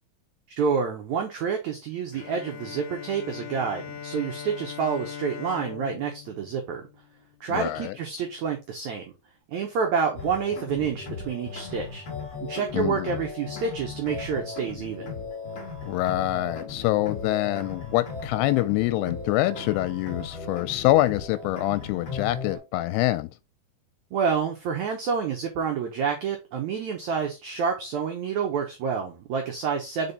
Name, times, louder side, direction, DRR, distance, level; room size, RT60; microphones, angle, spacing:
voice 1, 0.6-6.8 7.4-9.0 9.5-12.0 12.4-15.1 24.1-30.1, right 6 dB, 80° right, 1.7 m, -28 dB
Bowed string instrument, 2.1-7.6, left 8 dB, 75° left, 2.0 m, -40 dB
voice 2, 7.5-7.9 12.7-13.2 15.9-23.3, left 16 dB, 90° left, 2.6 m, -25 dB
sound 1, 10.1-22.6, left 4 dB, 45° left, 1.6 m, -37 dB
5.3 x 4.4 x 4.0 m
omnidirectional pair, 4.5 m